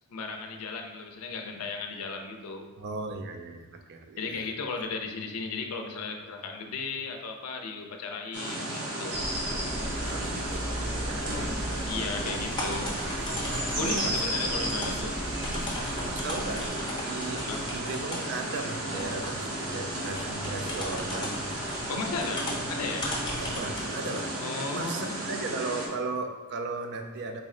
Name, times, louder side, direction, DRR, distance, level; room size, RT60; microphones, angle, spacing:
voice 1, 0.1-2.7 4.2-9.4 11.9-13.0 13.8-15.2 17.5-17.6 21.9-23.1 24.4-25.1, left 4 dB, 85° left, 4 dB, 0.5 m, -35 dB
voice 2, 2.8-4.4 10.1-11.9 13.8-14.1 14.4-14.5 14.9-15.1 15.5-15.8 16.1-16.6 17.0-17.4 17.7-21.6 23.4-24.4 24.7-27.4, right 3 dB, 50° right, 5 dB, 0.4 m, -37 dB
sound 1, 8.3-25.9, right 1 dB, 75° right, 0.8 m, -34 dB
sound 2, 9.1-16.7, equal, 90° right, 1.1 m, -34 dB
sound 3, 11.9-23.9, left 1 dB, 20° left, 0.7 m, -38 dB
3.9 x 2.1 x 3.6 m, 1.2 s
head